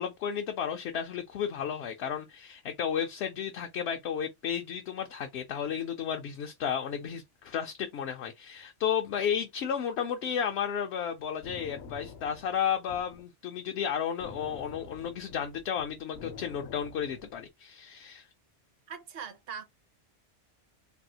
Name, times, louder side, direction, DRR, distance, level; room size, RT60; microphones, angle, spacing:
voice 1, 0.0-18.3, left 8 dB, 70° left, 0.8 m, -33 dB
sound 1, 11.2-13.3 14.2-17.5, left 4 dB, 90° left, 1.1 m, -47 dB
voice 2, 18.9-19.6, right 7 dB, 60° right, 0.9 m, -41 dB
3.4 x 2.3 x 2.7 m
omnidirectional pair, 1.2 m